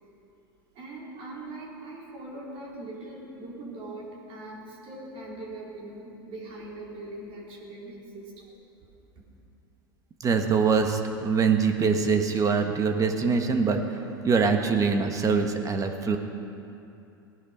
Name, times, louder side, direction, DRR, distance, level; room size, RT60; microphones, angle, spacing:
voice 1, 0.7-8.6, right 2 dB, 50° right, -3 dB, 4.0 m, -41 dB
voice 2, 10.2-16.2, right 5 dB, 25° right, 5 dB, 1.5 m, -24 dB
18.5 x 10.5 x 5.2 m, 2.7 s
hypercardioid pair, 95°, 12 cm